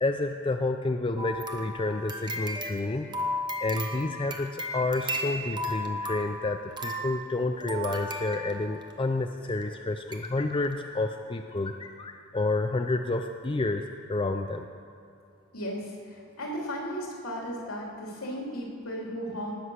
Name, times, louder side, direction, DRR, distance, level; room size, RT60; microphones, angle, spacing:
voice 1, 0.0-3.1 3.6-13.8 14.1-14.7, left 2 dB, 25° left, 6 dB, 0.5 m, -29 dB
sound 1, 1.2-8.9 9.6-9.7 10.1-10.3 10.6-10.7, equal, 20° right, 1.1 m, -35 dB
voice 2, 15.5-19.5, equal, 75° left, -2 dB, 3.3 m, -35 dB
19.0 x 7.8 x 6.4 m, 2.7 s
head